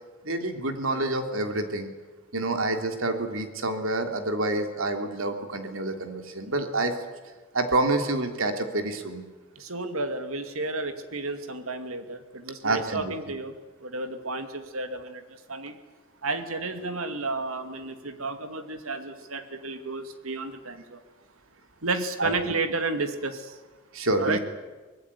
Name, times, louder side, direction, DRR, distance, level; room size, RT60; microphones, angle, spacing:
voice 1, 0.2-1.9 2.3-6.9 7.5-9.2 12.6-13.1 22.2-22.3 23.9-24.4, right 2 dB, 70° right, 6 dB, 3.1 m, -27 dB
voice 2, 9.6-13.5 13.8-15.2 15.5-15.7 16.2-21.0 21.8-23.6 24.2-24.4, right 3 dB, 90° right, 8 dB, 2.5 m, -32 dB
24.0 x 20.0 x 9.9 m, 1.3 s
head